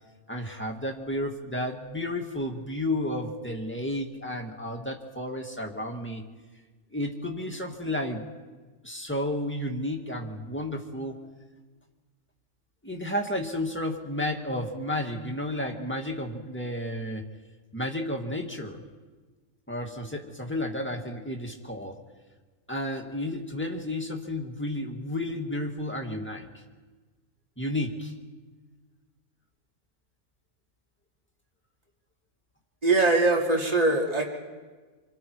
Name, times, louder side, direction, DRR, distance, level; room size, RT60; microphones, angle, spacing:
voice 1, 0.3-6.2 6.9-8.2 8.8-11.2 12.8-17.2 17.7-18.8 19.7-22.0 22.7-26.6 27.6-28.1, left 1 dB, 10° left, 1 dB, 2.2 m, -32 dB
voice 2, 32.8-34.3, right 2 dB, 30° right, 0 dB, 2.8 m, -22 dB
29.0 x 27.0 x 4.8 m, 1.4 s
omnidirectional pair, 1.4 m